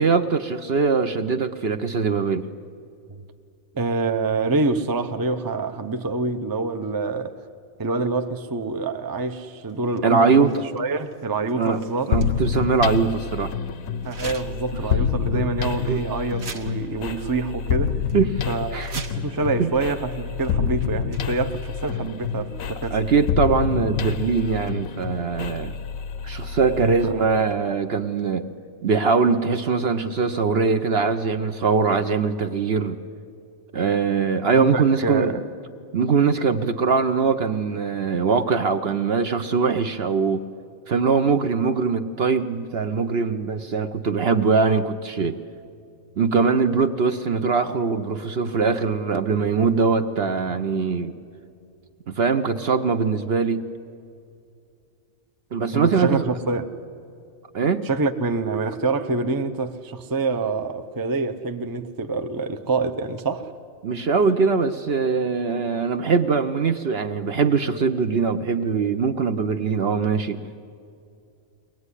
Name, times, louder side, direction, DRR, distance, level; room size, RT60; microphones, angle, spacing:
voice 1, 0.0-2.5 10.0-10.5 11.6-11.8 12.1-13.5 15.3-15.5 15.9-16.0 18.1-18.4 18.7-18.9 19.6-19.7 22.9-25.8 26.2-28.5 28.8-33.0 33.7-35.4 35.9-40.4 40.9-45.4 46.2-51.1 52.1-53.6 55.5-56.3 57.5-57.8 63.8-70.4, right 5 dB, 50° right, 0.9 m, -22 dB
voice 2, 3.7-7.4 7.8-12.1 14.0-18.0 18.5-23.0 26.8-27.2 34.6-35.4 55.7-56.7 57.8-63.5, right 3 dB, 20° right, 0.6 m, -26 dB
sound 1, 9.3-13.1 14.0-14.7 15.1-15.2 15.8-16.0 16.3-17.1 17.3-17.4 17.7-18.2 18.6-19.5 20.3-20.5 20.8-21.6 22.6-23.2, right 4 dB, 75° right, 1.7 m, -43 dB
sound 2, 12.1-27.8, left 7 dB, 75° left, 1.2 m, -28 dB
23.0 x 19.0 x 9.9 m
omnidirectional pair, 1.4 m